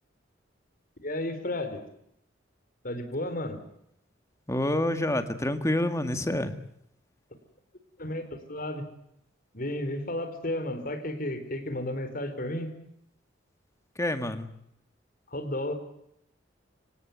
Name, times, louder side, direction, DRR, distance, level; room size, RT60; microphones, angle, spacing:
voice 1, 1.0-1.8 2.8-3.6 8.0-8.8 9.5-12.7 15.3-15.7, left 1 dB, 45° left, 8 dB, 4.4 m, -33 dB
voice 2, 4.5-6.6 14.0-14.5, left 1 dB, 15° left, 9 dB, 2.0 m, -28 dB
26.5 x 17.5 x 9.4 m, 0.76 s
head